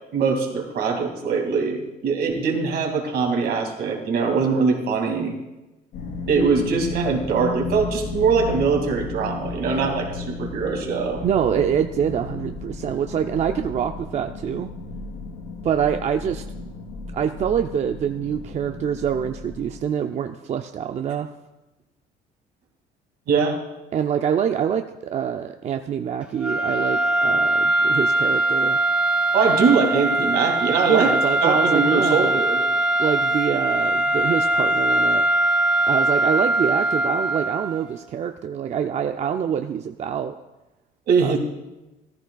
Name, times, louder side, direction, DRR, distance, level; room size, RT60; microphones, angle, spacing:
voice 1, 0.1-5.3 6.3-11.2 23.3-23.6 29.3-31.1 31.4-32.6 41.1-41.4, right 5 dB, 70° right, 2 dB, 2.2 m, -22 dB
sound 1, 5.9-19.8, left 3 dB, 75° left, 3.9 m, -34 dB
voice 2, 11.2-14.7 15.6-16.4 17.1-21.3 23.9-28.8 30.9-32.4 33.0-35.2 35.9-40.4 41.2-41.4, right 8 dB, 45° right, 6 dB, 0.5 m, -25 dB
sound 2, 26.4-37.9, right 1 dB, 10° right, 2.0 m, -21 dB
14.5 x 13.5 x 2.3 m, 1.0 s
cardioid pair, 110°, 17 cm